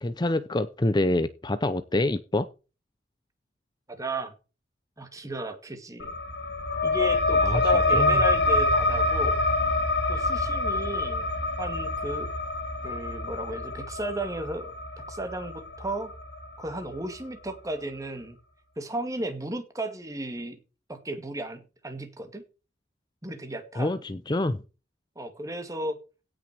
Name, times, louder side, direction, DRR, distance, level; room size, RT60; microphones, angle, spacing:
voice 1, 0.0-2.5 7.4-7.6 7.9-8.2 23.8-24.6, left 1 dB, 25° left, 13 dB, 0.6 m, -26 dB
voice 2, 3.9-4.3 5.0-6.1 6.8-9.4 10.1-11.3 11.6-12.3 12.8-16.1 16.6-18.4 18.8-20.6 20.9-22.4 23.2-23.9 25.2-26.0, right 1 dB, 20° right, 7 dB, 2.0 m, -34 dB
sound 1, 6.0-17.1, left 2 dB, 60° left, 2.2 m, -26 dB
17.0 x 6.3 x 4.6 m, 0.32 s
head